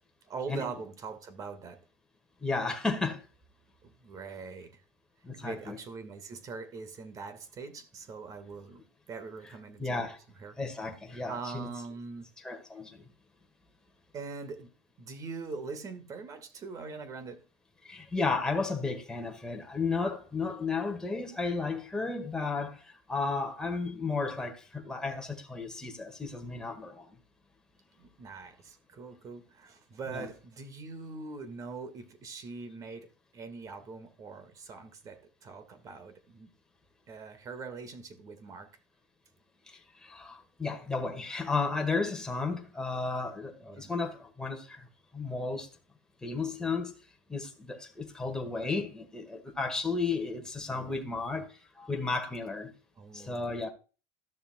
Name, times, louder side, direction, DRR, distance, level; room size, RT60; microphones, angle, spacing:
voice 1, 0.2-1.9 3.8-4.8 5.4-8.8 9.1-10.1 10.4-10.6 11.3-12.3 14.1-14.7 15.0-17.5 28.0-36.5 37.1-38.8 43.6-43.9 50.7-51.2 53.0-53.4, right 4 dB, 30° right, 1.7 m, -42 dB
voice 2, 2.4-3.2 5.2-5.8 9.8-10.2 10.6-11.7 12.4-13.0 17.8-27.1 30.1-30.3 39.7-44.9 45.1-45.7 46.2-46.9 47.3-52.7 53.1-53.7, left 4 dB, 5° left, 1.6 m, -33 dB
13.5 x 6.8 x 2.2 m
supercardioid pair, 130°, 11 cm